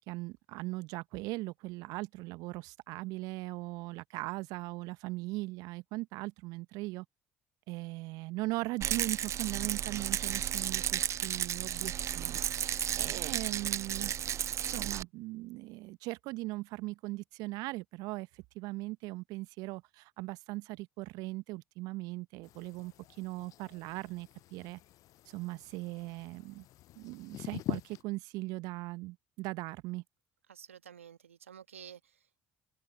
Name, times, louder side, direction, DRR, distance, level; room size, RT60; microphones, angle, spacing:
voice 1, 0.1-7.1 7.7-14.1 14.7-24.8 25.3-26.7 26.9-30.0, right 21 dB, 65° right, 1.0 m, -39 dB
Rattle, 8.8-15.0, right 10 dB, 45° right, 0.5 m, -33 dB
sound 1, 22.4-28.0, left 15 dB, 55° left, 0.5 m, -44 dB
voice 2, 30.5-32.5, right 8 dB, 85° right, 1.4 m, -52 dB
figure-of-eight pair, 55°, 7 cm